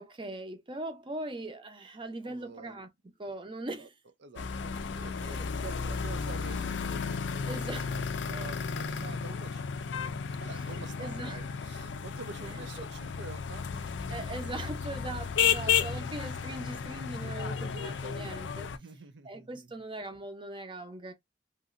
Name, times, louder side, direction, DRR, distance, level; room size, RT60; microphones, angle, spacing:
voice 1, 0.0-2.9 3.2-3.9 5.2-5.5 7.5-7.9 10.7-11.4 14.1-18.7 19.2-21.1, right 2 dB, 30° right, 0.7 m, -40 dB
voice 2, 2.2-2.8 3.7-3.9 4.2-9.8 10.4-14.1 16.2-16.3 18.7-19.8, right 4 dB, 70° right, 0.6 m, -47 dB
sound 1, 4.4-18.8, left 6 dB, 75° left, 0.4 m, -33 dB
3.0 x 2.7 x 2.5 m
head